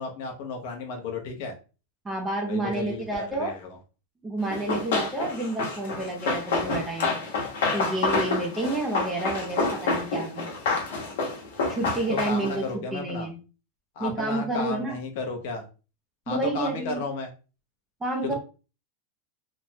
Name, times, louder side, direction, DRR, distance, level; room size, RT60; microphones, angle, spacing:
voice 1, 0.0-1.5 2.5-3.8 12.1-13.3 14.0-15.6 16.3-17.3, left 3 dB, 45° left, 3 dB, 0.7 m, -33 dB
voice 2, 2.0-3.5 4.2-7.1 7.7-10.5 11.7-13.4 14.0-15.0 16.3-17.0 18.0-18.3, right 2 dB, 10° right, 1 dB, 0.4 m, -29 dB
Run, 4.5-12.7, left 3 dB, 75° left, 1.0 m, -28 dB
3.2 x 2.1 x 2.7 m, 0.33 s
supercardioid pair, 175°, 0 cm